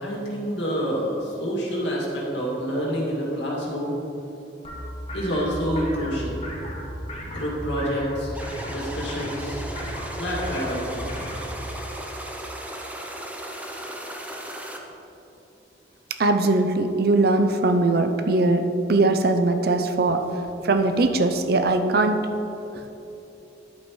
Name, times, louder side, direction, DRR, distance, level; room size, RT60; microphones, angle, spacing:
voice 1, 0.0-4.0 5.1-6.4 7.3-9.6 10.2-11.1, equal, 80° left, -3 dB, 2.2 m, -28 dB
sound 1, 4.6-11.8, equal, 35° left, 1.4 m, -35 dB
sound 2, 8.3-14.8, right 1 dB, 10° right, 0.7 m, -36 dB
voice 2, 16.2-20.3 20.6-22.3, right 2 dB, 60° right, 7 dB, 0.6 m, -21 dB
10.5 x 8.7 x 3.2 m, 3.0 s
head